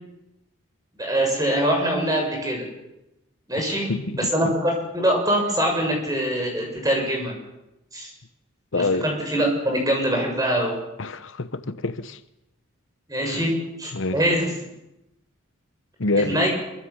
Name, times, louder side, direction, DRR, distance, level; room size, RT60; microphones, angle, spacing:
voice 1, 1.0-2.7 3.5-7.3 7.9-8.1 8.7-10.8 13.1-14.5 16.2-16.5, equal, 15° right, 7.1 m, -23 dB
voice 2, 3.6-4.5 8.7-9.1 11.0-12.2 13.2-13.4 13.9-14.2 16.0-16.5, left 2 dB, 60° left, 0.9 m, -27 dB
25.5 x 24.5 x 7.2 m
head